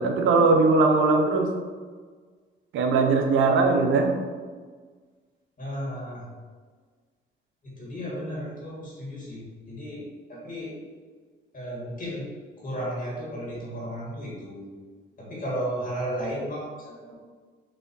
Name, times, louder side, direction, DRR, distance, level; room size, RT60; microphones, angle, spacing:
voice 1, 0.0-1.5 2.7-4.2, right 3 dB, 80° right, 3 dB, 0.6 m, -20 dB
voice 2, 5.6-6.3 7.6-10.7 11.5-12.3 12.6-14.7 15.2-17.1, equal, 40° left, -6 dB, 1.5 m, -34 dB
4.1 x 2.7 x 2.5 m, 1.5 s
cardioid pair, 90°, 20 cm